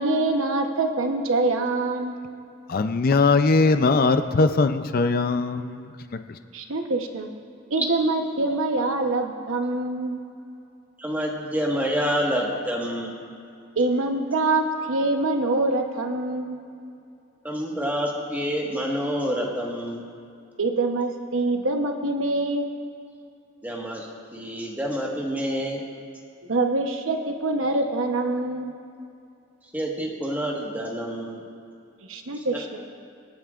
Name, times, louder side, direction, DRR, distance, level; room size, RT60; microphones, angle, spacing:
voice 1, 0.0-2.2 6.5-7.3 7.7-10.2 13.8-16.6 20.6-22.7 26.5-28.7 32.1-32.8, right 2 dB, 85° right, 4 dB, 1.0 m, -25 dB
voice 2, 2.7-6.4, left 3 dB, 50° left, 9 dB, 0.5 m, -21 dB
voice 3, 11.0-13.1 17.4-20.0 23.6-25.8 29.7-31.4 32.3-32.6, equal, 10° right, -2 dB, 1.5 m, -28 dB
25.5 x 9.1 x 2.5 m, 2.5 s
head